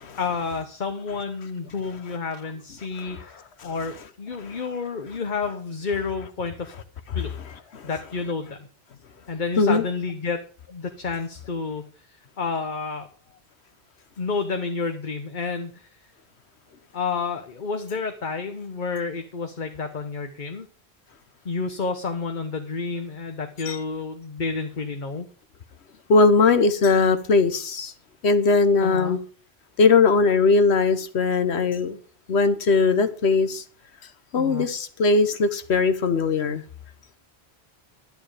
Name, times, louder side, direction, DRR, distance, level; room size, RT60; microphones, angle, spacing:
voice 1, 0.2-6.7 7.1-7.3 7.8-8.7 9.3-10.4 10.7-13.1 14.2-15.9 16.9-20.7 21.4-25.3 28.8-29.2 34.3-34.7, left 4 dB, 50° left, 1.1 m, -30 dB
voice 2, 26.1-27.9 28.2-29.2 29.8-32.0 32.3-33.6 34.3-36.6, left 4 dB, 85° left, 1.3 m, -20 dB
11.0 x 9.6 x 4.9 m
omnidirectional pair, 1.1 m